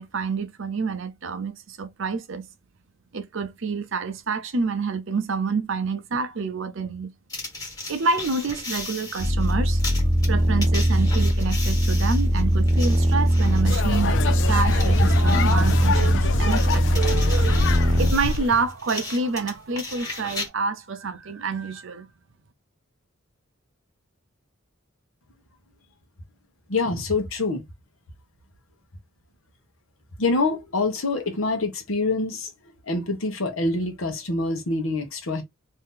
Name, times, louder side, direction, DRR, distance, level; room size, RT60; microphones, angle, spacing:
voice 1, 0.0-2.4 3.1-7.1 7.9-9.8 10.3-22.1, right 4 dB, 65° right, 0.7 m, -28 dB
sound 1, 7.3-20.5, left 3 dB, 15° left, 1.4 m, -37 dB
sound 2, 9.2-18.1, equal, 25° right, 0.6 m, -20 dB
sound 3, 13.6-18.6, left 5 dB, 60° left, 0.4 m, -27 dB
voice 2, 26.7-27.6 30.2-32.5 32.8-35.4, left 3 dB, 80° left, 1.0 m, -25 dB
2.7 x 2.7 x 3.6 m
head